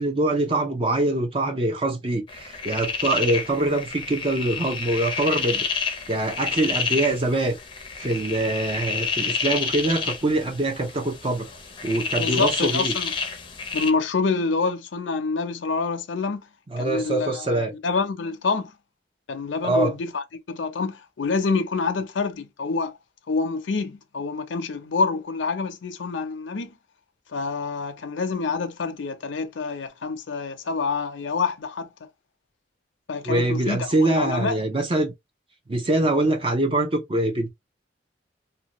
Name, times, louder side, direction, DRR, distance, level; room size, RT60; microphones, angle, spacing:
voice 1, 0.0-7.6 7.9-11.5 11.8-12.9 16.7-17.7 19.6-19.9 33.3-35.1 35.7-37.5, right 2 dB, 30° right, 0.6 m, -24 dB
sound 1, 2.3-13.9, left 5 dB, 25° left, 0.5 m, -29 dB
voice 2, 12.2-13.1 13.7-16.4 16.8-18.7 19.3-22.9 23.3-26.7 27.3-31.9 33.1-34.6, left 4 dB, 90° left, 0.5 m, -27 dB
2.7 x 2.2 x 2.9 m
head